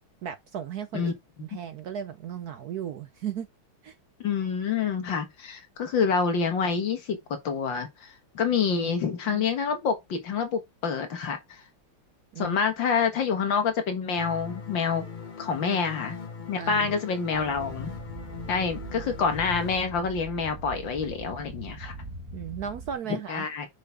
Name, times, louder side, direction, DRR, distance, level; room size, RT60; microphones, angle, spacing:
voice 1, 0.2-1.1 1.4-3.5 3.8-4.0 8.8-8.9 9.3-9.4 12.3-12.6 15.6-15.8 16.5-17.0 18.6-18.7 22.3-23.5, right 8 dB, 65° right, 1.0 m, -36 dB
voice 2, 4.2-7.2 7.4-11.6 12.4-15.0 15.4-16.2 16.5-17.9 18.5-22.0 23.3-23.7, left 5 dB, 70° left, 2.1 m, -27 dB
sound 1, 14.2-19.7, left 5 dB, 40° left, 0.6 m, -40 dB
sound 2, 17.3-23.0, right 3 dB, 35° right, 3.0 m, -42 dB
6.3 x 5.8 x 3.5 m
omnidirectional pair, 2.2 m